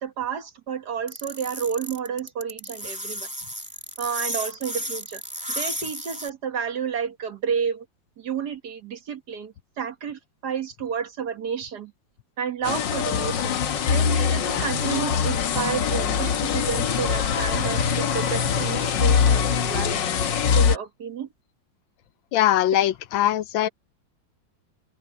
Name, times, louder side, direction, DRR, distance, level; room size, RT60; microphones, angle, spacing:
voice 1, 0.0-3.3 4.0-5.2 5.6-7.9 8.2-11.9 12.4-13.6 13.9-20.0 20.5-21.3, right 7 dB, 60° right, 2.0 m, -31 dB
sound 1, 1.1-6.3, equal, 5° right, 2.5 m, -33 dB
sound 2, 12.6-20.8, left 7 dB, 70° left, 1.8 m, -23 dB
voice 2, 22.3-23.7, left 12 dB, 85° left, 1.5 m, -21 dB
omnidirectional pair, 2.1 m